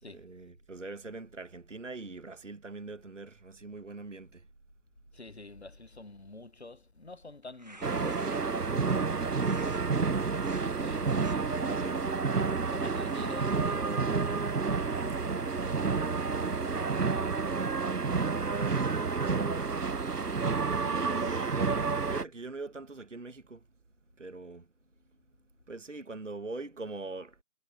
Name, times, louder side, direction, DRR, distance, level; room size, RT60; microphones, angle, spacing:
voice 1, 0.1-4.5 11.7-12.0 16.7-17.8 18.1-19.9 20.7-23.6 24.2-24.7 25.7-27.4, right 3 dB, 50° right, 1.4 m, -43 dB
voice 2, 5.1-10.1 10.6-11.6 12.7-15.9, left 3 dB, 45° left, 1.3 m, -48 dB
sound 1, 7.4-8.6 9.3-9.8 10.3-10.6 11.0-11.4 12.0-14.6, right 2 dB, 25° right, 1.6 m, -53 dB
sound 2, 7.8-22.2, right 4 dB, 80° right, 1.0 m, -30 dB
sound 3, 11.6-17.7, left 1 dB, 70° left, 6.1 m, -54 dB
figure-of-eight pair, 165°, 46 cm